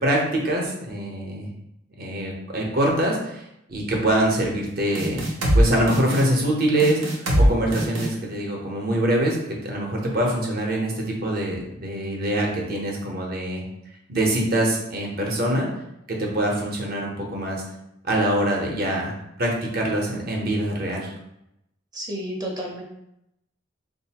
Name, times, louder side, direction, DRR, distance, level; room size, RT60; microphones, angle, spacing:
voice 1, 0.0-1.5 2.0-3.4 3.7-5.3 5.5-9.4 9.6-13.6 14.1-15.7 16.1-17.6 18.1-19.1 19.4-21.1, right 1 dB, 50° right, -1 dB, 0.8 m, -24 dB
sound 1, 5.0-5.6 5.9-6.2 6.8-7.5 7.7-8.1, right 1 dB, 90° right, 0.8 m, -21 dB
voice 2, 21.9-22.8, equal, 20° right, -1 dB, 0.6 m, -31 dB
3.9 x 2.6 x 2.8 m, 0.82 s
head